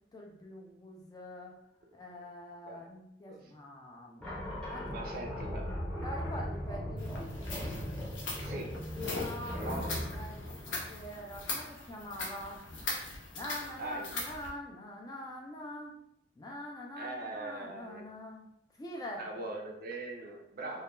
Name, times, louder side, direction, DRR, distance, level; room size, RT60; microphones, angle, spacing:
voice 1, 0.1-1.5 1.9-4.9 6.0-7.4 9.1-9.8 10.1-10.3 10.7-12.6 13.3-16.0 16.4-18.4 18.8-19.3, left 1 dB, 20° left, 0 dB, 0.3 m, -44 dB
sound 1, 4.2-11.6, left 1 dB, 5° left, 0.8 m, -39 dB
voice 2, 4.9-5.7 8.4-8.8 9.5-10.1 13.8-14.1 17.0-18.1 19.2-20.8, right 2 dB, 50° right, 1 dB, 0.4 m, -41 dB
sound 2, 7.0-14.5, left 2 dB, 65° left, 0.6 m, -40 dB
2.3 x 2.2 x 2.9 m, 0.76 s
head